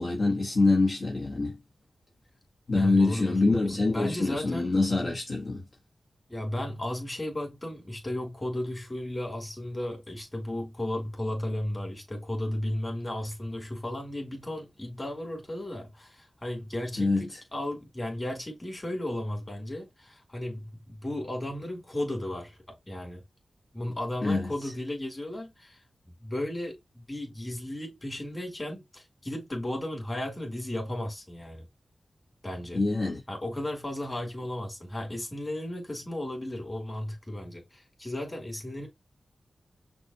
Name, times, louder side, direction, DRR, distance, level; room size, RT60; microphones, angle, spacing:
voice 1, 0.0-1.6 2.7-5.6 17.0-17.4 24.2-24.5 32.7-33.2, left 3 dB, 65° left, 1.4 m, -25 dB
voice 2, 2.7-3.4 3.6-4.7 6.3-22.6 22.9-23.2 23.7-25.7 26.2-26.8 27.1-31.7 32.4-32.8 33.3-38.9, left 1 dB, 30° left, 3.1 m, -34 dB
5.9 x 2.5 x 2.9 m
cardioid pair, 40°, 0 cm